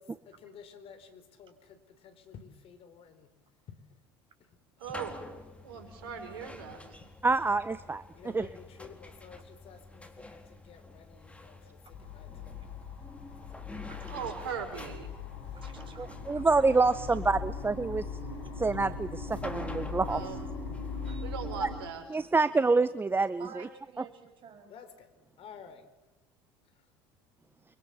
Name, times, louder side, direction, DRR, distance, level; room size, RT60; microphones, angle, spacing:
voice 1, 0.0-3.3 3.7-3.8 4.4-4.6 8.1-12.6 13.3-13.5 15.5-15.7 20.1-20.4 24.7-25.9 26.7-26.8, left 7 dB, 50° left, 10 dB, 4.0 m, -52 dB
sound 1, 4.8-21.5, left 2 dB, 10° left, 4.0 m, -48 dB
voice 2, 4.8-5.2 5.6-6.8 14.1-15.1 20.1-20.4 21.2-22.0, right 7 dB, 75° right, 7 dB, 5.3 m, -39 dB
voice 3, 7.2-8.0 8.3-8.5 16.0-18.0 18.6-20.2 21.6-21.7 22.1-23.5, right 3 dB, 15° right, 14 dB, 0.9 m, -27 dB
sound 2, 11.9-21.8, left 4 dB, 80° left, 5.6 m, -40 dB
voice 4, 13.8-14.3 15.5-16.5 21.0-21.2 23.4-24.7, right 6 dB, 40° right, 7 dB, 6.4 m, -51 dB
30.0 x 24.0 x 7.1 m, 1.1 s
hypercardioid pair, 75°, 13 cm